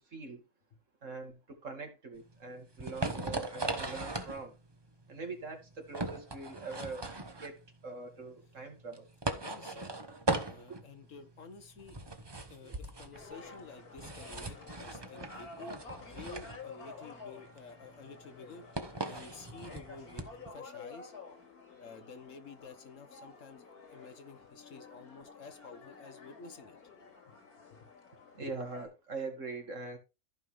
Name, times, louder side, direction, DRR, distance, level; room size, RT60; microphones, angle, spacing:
voice 1, 0.1-0.4 1.0-4.6 5.1-7.1 7.4-7.6 7.8-9.1 10.7-10.8 12.6-12.7 28.3-30.0, right 3 dB, 55° right, 2.4 m, -42 dB
sound 1, 2.2-20.5, right 2 dB, 20° right, 0.9 m, -39 dB
voice 2, 9.3-10.0 10.5-12.0 12.5-20.2 20.5-21.1 21.8-26.8 27.3-27.4 27.7-27.9, left 4 dB, 60° left, 1.4 m, -51 dB
sound 2, 13.1-28.9, left 4 dB, 90° left, 3.0 m, -51 dB
14.0 x 5.5 x 3.4 m
omnidirectional pair, 1.5 m